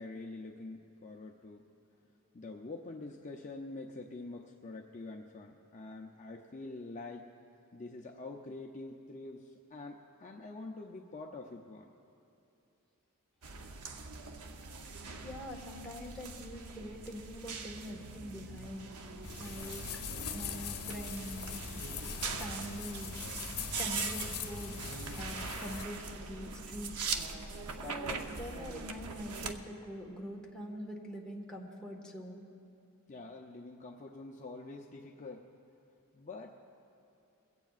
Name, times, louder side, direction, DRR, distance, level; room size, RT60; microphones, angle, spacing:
voice 1, 0.0-1.6 2.3-7.3 7.7-11.9 33.1-35.5 36.1-36.6, left 2 dB, 35° left, 1 dB, 0.5 m, -46 dB
sound 1, 13.4-29.5, right 4 dB, 80° right, 0.8 m, -42 dB
voice 2, 15.2-19.8 20.3-21.6 22.4-23.2 23.7-24.8 25.1-27.1 27.8-32.4, equal, 5° left, -2 dB, 1.5 m, -44 dB
sound 2, 19.2-25.8, left 6 dB, 70° left, 1.0 m, -42 dB
22.5 x 16.5 x 2.5 m, 2.6 s
head